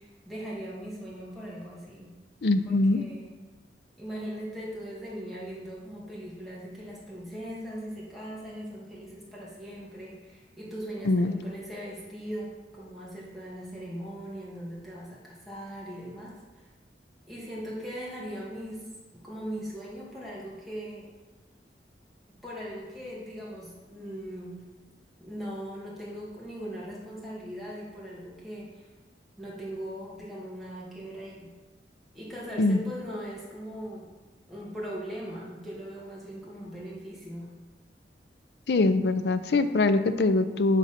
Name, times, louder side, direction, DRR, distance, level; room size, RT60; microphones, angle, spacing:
voice 1, 0.0-2.1 2.7-3.3 4.0-16.7 17.3-18.9 19.1-21.1 22.4-24.7 25.2-28.9 29.4-31.5 32.1-34.1 34.5-37.5, equal, ahead, -7 dB, 2.1 m, -39 dB
voice 2, 2.4-3.0 11.0-11.3 32.6-32.8 38.7-40.8, left 2 dB, 70° left, 11 dB, 0.5 m, -23 dB
9.2 x 3.9 x 5.7 m, 1.2 s
head